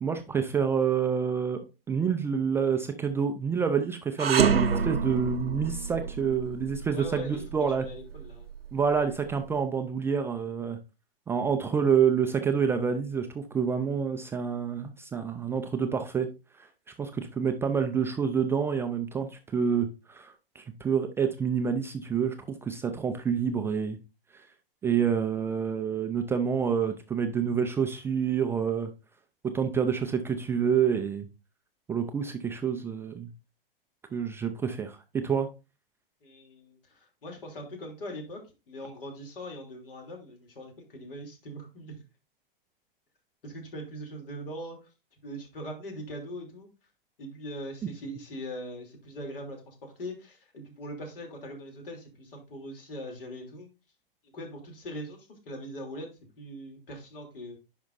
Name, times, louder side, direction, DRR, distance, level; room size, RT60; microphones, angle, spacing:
voice 1, 0.0-1.6 1.9-7.8 8.7-10.8 11.3-16.3 17.0-22.4 22.6-24.0 24.3-24.4 24.8-28.9 29.5-31.3 31.9-33.3 34.1-35.5, right 7 dB, 10° right, 6 dB, 0.3 m, -28 dB
sound 1, 4.2-9.4, right 6 dB, 90° right, 0.7 m, -29 dB
voice 2, 6.9-8.5 36.2-38.4 38.7-42.0 43.4-44.9 45.2-46.7 47.2-53.7 54.2-56.1 56.4-57.6, equal, 70° left, 2 dB, 2.9 m, -41 dB
10.5 x 5.1 x 2.5 m, 0.29 s
figure-of-eight pair, 110°, 29 cm